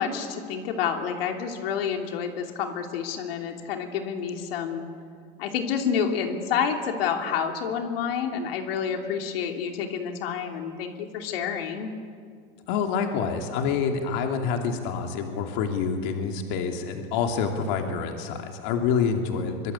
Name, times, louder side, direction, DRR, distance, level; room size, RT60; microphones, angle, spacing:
voice 1, 0.0-4.8 5.4-11.9, left 7 dB, 80° left, 3 dB, 2.9 m, -29 dB
voice 2, 12.7-19.7, left 6 dB, 60° left, 3 dB, 2.7 m, -27 dB
24.0 x 23.0 x 8.3 m, 2.1 s
supercardioid pair, 145°, 29 cm